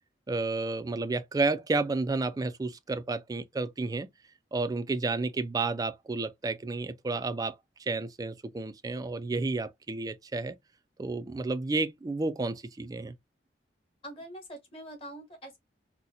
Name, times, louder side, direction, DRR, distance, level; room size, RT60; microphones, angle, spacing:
voice 1, 0.3-4.1 4.5-10.6 11.0-13.1, right 3 dB, 20° right, 0.3 m, -31 dB
voice 2, 14.0-15.6, right 1 dB, 35° left, 1.3 m, -44 dB
4.1 x 2.1 x 2.6 m
head